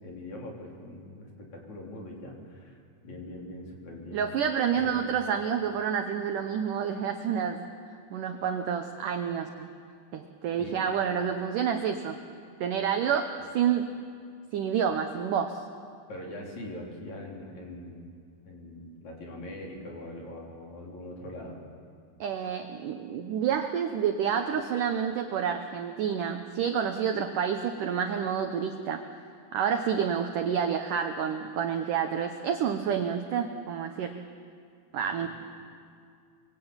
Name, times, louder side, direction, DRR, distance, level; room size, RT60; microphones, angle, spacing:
voice 1, 0.0-4.2 4.7-5.0 10.6-10.7 16.1-18.1 18.4-21.6 35.2-35.3, left 1 dB, 40° left, -2 dB, 4.9 m, -42 dB
voice 2, 4.1-7.7 8.1-9.7 10.1-12.2 12.6-13.9 14.5-15.6 22.2-29.0 29.5-34.2 34.9-35.3, right 8 dB, 80° right, 6 dB, 1.8 m, -29 dB
24.5 x 23.0 x 8.9 m, 2.3 s
omnidirectional pair, 5.2 m